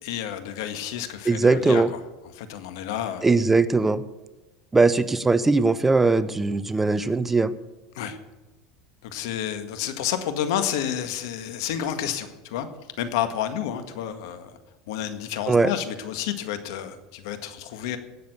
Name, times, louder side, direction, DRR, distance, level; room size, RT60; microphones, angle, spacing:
voice 1, 0.0-2.0 2.3-3.2 7.9-8.2 9.0-12.7 13.0-14.5 14.9-18.0, left 10 dB, 80° left, 9 dB, 1.7 m, -30 dB
voice 2, 1.3-1.9 3.2-4.0 4.7-7.5 15.5-15.7, right 3 dB, 10° right, 14 dB, 0.6 m, -20 dB
18.0 x 6.9 x 8.1 m, 1.1 s
supercardioid pair, 130°, 2 cm